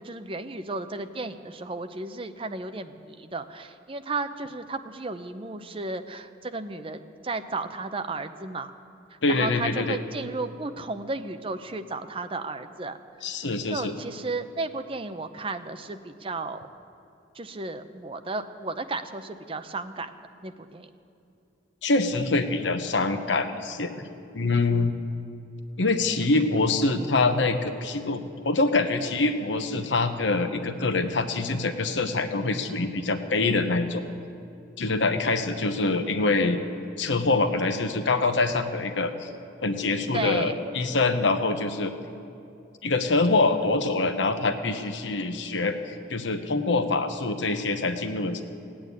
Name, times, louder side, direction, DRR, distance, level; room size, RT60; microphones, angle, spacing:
voice 1, 0.0-8.7 9.3-13.0 13.7-16.7 17.3-20.1 20.4-20.9 40.1-40.6, right 3 dB, 30° right, 8 dB, 0.7 m, -34 dB
voice 2, 9.2-10.0 13.2-13.9 21.8-23.9 24.3-24.9 25.8-34.0 34.8-36.6 37.0-39.3 39.6-41.9 42.8-48.4, left 3 dB, 80° left, 8 dB, 1.0 m, -25 dB
16.5 x 8.8 x 9.5 m, 2.6 s
head